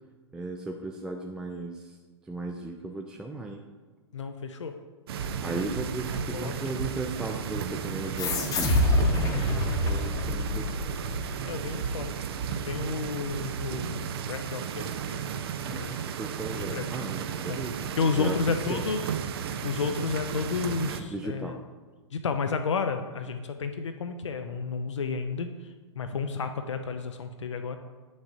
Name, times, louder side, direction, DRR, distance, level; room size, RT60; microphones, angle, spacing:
voice 1, 0.3-2.0 2.2-3.6 5.4-10.9 15.6-18.4 18.7-18.8 21.1-21.6, right 2 dB, 5° right, 2 dB, 0.3 m, -36 dB
voice 2, 4.1-4.8 6.1-6.8 11.4-12.1 12.6-16.0 16.7-16.9 17.5-17.6 18.0-19.1 19.6-21.6 22.1-27.8, left 5 dB, 75° left, 7 dB, 0.5 m, -32 dB
sound 1, 5.1-21.0, right 7 dB, 55° right, 0.5 m, -34 dB
sound 2, 8.2-11.2, left 1 dB, 25° left, 0.8 m, -26 dB
8.8 x 6.3 x 2.6 m, 1.4 s
figure-of-eight pair, 105°, 15 cm